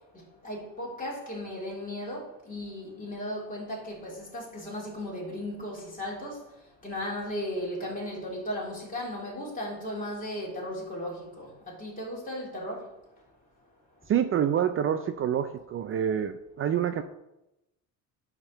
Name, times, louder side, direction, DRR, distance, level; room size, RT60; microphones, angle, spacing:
voice 1, 0.4-6.4 6.8-12.8, left 1 dB, 25° left, 3.3 m, -36 dB
voice 2, 14.1-17.0, right 9 dB, 40° right, 0.5 m, -27 dB
9.8 x 3.7 x 6.5 m
cardioid pair, 120°, 34 cm